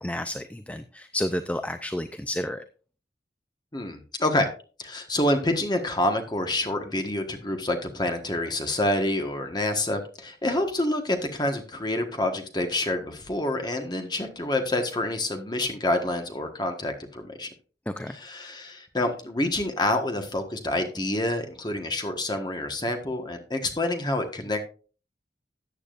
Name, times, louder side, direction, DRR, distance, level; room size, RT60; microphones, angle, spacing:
voice 1, 0.0-2.6 17.9-18.2, left 1 dB, 10° left, 9 dB, 0.4 m, -31 dB
voice 2, 3.7-4.5 4.8-17.5 18.1-24.6, left 1 dB, 25° left, 5 dB, 1.4 m, -27 dB
14.0 x 8.5 x 2.5 m, 0.37 s
head